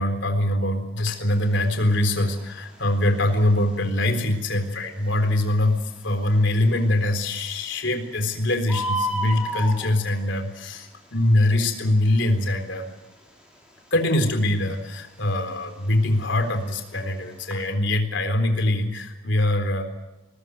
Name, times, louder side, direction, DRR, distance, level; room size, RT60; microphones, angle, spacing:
voice 1, 0.0-5.8 6.0-12.9 13.9-19.8, left 1 dB, 60° left, 6 dB, 4.0 m, -23 dB
Bird, 1.3-17.7, equal, 5° right, 6.2 m, -37 dB
21.0 x 20.0 x 9.5 m, 1.0 s
head